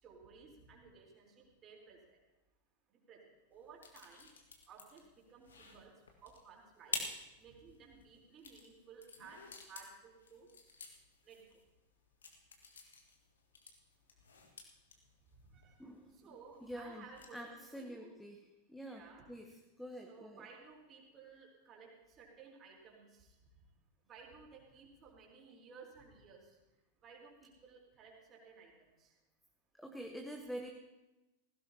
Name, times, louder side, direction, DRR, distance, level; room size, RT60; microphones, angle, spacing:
voice 1, 0.0-2.2 2.9-4.3 4.7-5.9 6.2-7.0 7.4-10.5 11.2-11.4 15.4-15.9 16.1-18.1 18.8-19.3 20.0-23.4 24.0-26.6 27.0-28.7 29.0-29.1, right 5 dB, 30° right, -1 dB, 4.0 m, -57 dB
sound 1, 3.5-17.5, left 4 dB, 70° left, 1.8 m, -50 dB
voice 2, 15.8-16.3 16.6-17.0 17.3-18.4 18.7-19.0 19.3-19.5 19.8-20.4 29.8-30.7, equal, ahead, 2 dB, 1.2 m, -46 dB
19.0 x 16.0 x 2.9 m, 1.0 s
figure-of-eight pair, 90°, 0 cm